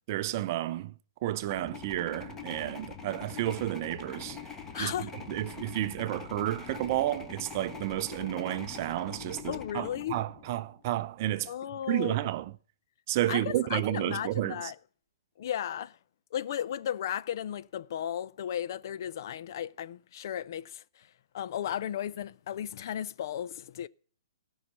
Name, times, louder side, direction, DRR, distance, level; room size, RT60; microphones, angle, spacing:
voice 1, 0.1-0.9 1.2-4.4 4.8-11.5 11.9-12.5 13.1-14.7, right 14 dB, 40° right, 0.5 m, -31 dB
sound 1, 1.4-10.7, left 6 dB, 15° left, 1.4 m, -44 dB
voice 2, 4.7-5.1 9.5-10.2 11.5-12.3 13.3-14.8 15.4-16.0 16.3-21.1 21.3-23.9, left 10 dB, 55° left, 0.5 m, -35 dB
15.0 x 5.6 x 8.1 m
hypercardioid pair, 140°, 2 cm